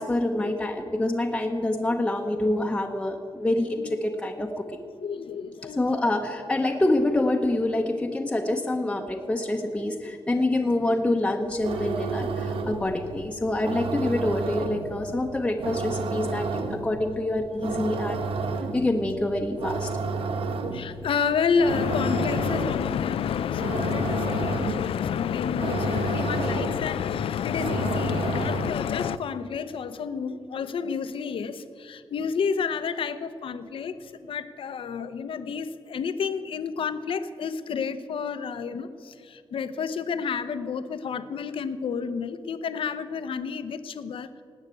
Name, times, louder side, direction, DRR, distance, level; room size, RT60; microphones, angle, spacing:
voice 1, 0.0-4.8 5.8-18.2 18.7-19.9, left 1 dB, 10° left, 2 dB, 0.9 m, -26 dB
voice 2, 5.0-5.8 6.1-6.2 7.7-7.8 8.4-8.5 10.9-11.0 11.9-12.0 20.4-33.9 34.2-44.3, left 6 dB, 70° left, 12 dB, 0.8 m, -31 dB
sound 1, 11.5-29.0, right 4 dB, 80° right, 1.1 m, -31 dB
Stream / Boat Water vehicle, 21.7-29.2, left 9 dB, 90° left, 0.4 m, -29 dB
19.0 x 8.0 x 8.2 m, 2.4 s
wide cardioid pair, 150°, 9 cm